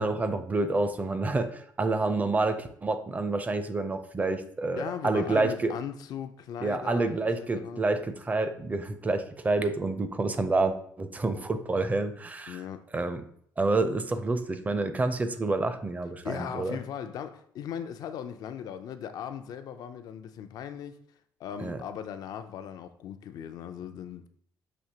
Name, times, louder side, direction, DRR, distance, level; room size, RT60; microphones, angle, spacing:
voice 1, 0.0-5.7 6.6-12.6 12.9-13.2 13.6-16.8 21.6-21.8, right 3 dB, 20° right, 0.4 m, -28 dB
voice 2, 4.8-7.8 12.5-12.9 16.2-21.0 21.4-24.3, left 8 dB, 65° left, 0.4 m, -38 dB
6.1 x 2.8 x 2.8 m
cardioid pair, 95°, 7 cm